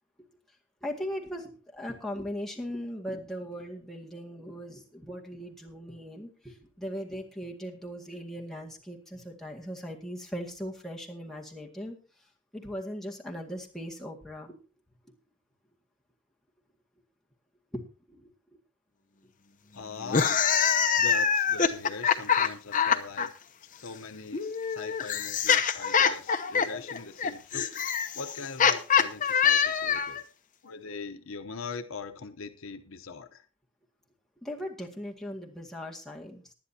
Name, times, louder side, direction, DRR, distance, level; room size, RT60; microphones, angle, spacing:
voice 1, 0.8-12.0 12.5-14.5 17.7-17.8 18.1-18.3 34.4-36.5, equal, ahead, 2.0 m, -39 dB
voice 2, 19.7-20.5 21.0-23.3 23.8-27.8 28.1-30.2 30.6-33.4, left 4 dB, 75° left, 0.9 m, -41 dB
sound 1, 20.0-23.3 24.3-30.2, left 7 dB, 35° left, 0.9 m, -25 dB
19.5 x 11.0 x 2.8 m
head